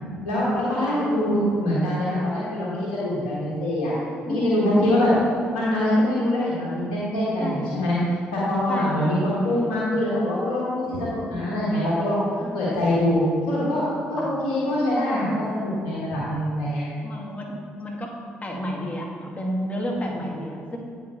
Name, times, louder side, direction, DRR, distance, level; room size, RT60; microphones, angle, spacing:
voice 1, 0.2-3.9 4.3-5.1 5.5-8.0 8.3-12.3 12.5-13.8 14.1-16.8, left 1 dB, 85° left, -8 dB, 1.6 m, -24 dB
voice 2, 0.9-1.3 4.3-5.0 7.4-7.7 8.7-9.2 11.2-11.4 12.4-12.7 14.2-14.3 16.2-16.3 17.0-18.1 18.4-20.8, equal, 25° left, 0 dB, 1.5 m, -31 dB
8.9 x 5.2 x 3.8 m, 2.2 s
hypercardioid pair, 50°, 5 cm